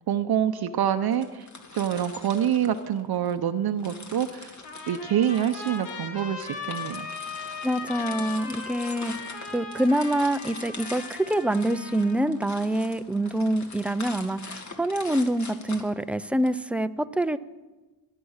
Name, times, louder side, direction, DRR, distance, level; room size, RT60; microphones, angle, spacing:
voice 1, 0.1-1.4 1.7-4.5 4.9-7.0, right 9 dB, 55° right, 8 dB, 0.8 m, -26 dB
sound 1, 1.1-3.4 3.8-16.5, left 3 dB, 40° left, 2.0 m, -43 dB
Trumpet, 4.6-12.3, left 5 dB, 75° left, 2.4 m, -38 dB
voice 2, 7.6-17.4, right 1 dB, 5° right, 12 dB, 0.4 m, -26 dB
22.0 x 8.5 x 6.5 m, 1.2 s
cardioid pair, 110°, 44 cm